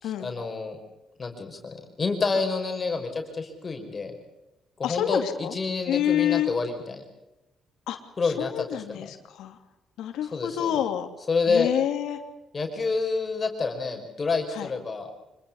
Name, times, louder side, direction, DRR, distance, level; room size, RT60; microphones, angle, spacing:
voice 1, 0.0-0.8 1.2-4.2 4.8-7.0 8.2-9.1 10.3-10.8 11.3-11.7 12.5-15.1, left 4 dB, 35° left, 4 dB, 5.4 m, -28 dB
voice 2, 4.8-5.5 5.9-6.5 7.9-8.0 8.2-9.6 10.0-11.1 11.5-12.2 14.5-14.7, left 11 dB, 85° left, 7 dB, 2.8 m, -28 dB
26.0 x 20.5 x 7.1 m, 0.95 s
cardioid pair, 90°, 0 cm